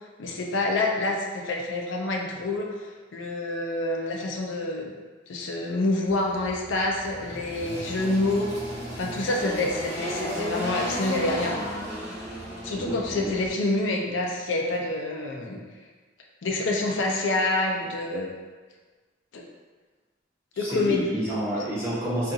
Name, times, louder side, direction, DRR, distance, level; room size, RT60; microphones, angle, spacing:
voice 1, 0.2-4.9 5.3-8.5 9.0-11.6 12.6-15.6 16.4-18.3 19.3-19.4 20.6-21.1, left 2 dB, 90° left, 0 dB, 0.4 m, -27 dB
Engine, 6.1-13.5, equal, 20° left, 0.9 m, -35 dB
voice 2, 12.7-13.3 20.5-22.3, right 1 dB, 15° right, -10 dB, 0.6 m, -29 dB
2.7 x 2.4 x 2.6 m, 1.4 s
head